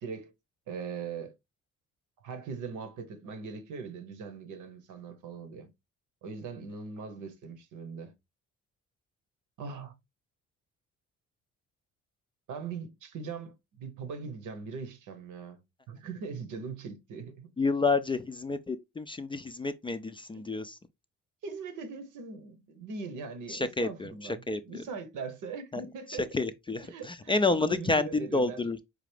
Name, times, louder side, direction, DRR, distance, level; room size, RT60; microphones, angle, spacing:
voice 1, 0.0-0.3 0.7-1.3 2.2-5.7 6.2-8.1 9.6-9.9 12.5-15.6 15.9-17.5 20.3-20.5 21.4-26.3 26.8-28.6, right 5 dB, 80° right, 0.9 m, -40 dB
voice 2, 17.6-20.8 23.5-24.6 25.7-25.8 26.3-28.8, left 3 dB, 15° left, 0.3 m, -29 dB
4.7 x 2.4 x 3.3 m
cardioid pair, 90°, 30 cm